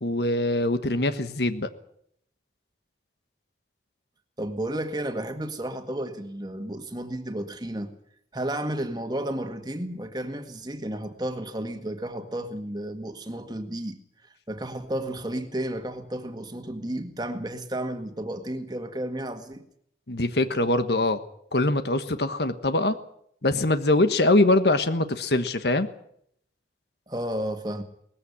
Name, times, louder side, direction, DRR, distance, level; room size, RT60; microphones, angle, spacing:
voice 1, 0.0-1.7 20.1-21.2 21.5-23.0 23.4-25.9, left 2 dB, 70° left, 1.3 m, -23 dB
voice 2, 4.4-7.9 8.3-14.0 14.5-19.6 27.1-27.8, right 1 dB, 25° right, 1.8 m, -32 dB
20.0 x 15.0 x 9.7 m
head